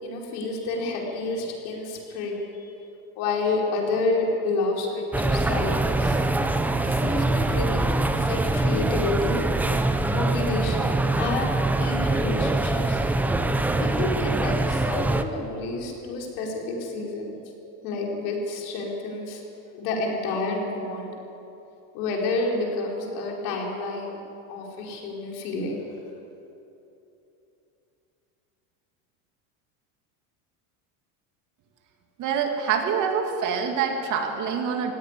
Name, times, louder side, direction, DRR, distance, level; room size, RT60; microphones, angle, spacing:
voice 1, 0.0-2.7 3.1-6.2 6.8-13.0 13.8-17.3 17.8-19.4 19.7-21.1 21.9-24.2 24.5-25.8, left 3 dB, 70° left, -1 dB, 4.9 m, -29 dB
sound 1, 5.1-15.2, right 2 dB, 5° right, 0.4 m, -24 dB
voice 2, 32.2-34.9, right 6 dB, 40° right, 3 dB, 2.6 m, -26 dB
17.5 x 16.0 x 10.0 m, 2.9 s
supercardioid pair, 150°, 45 cm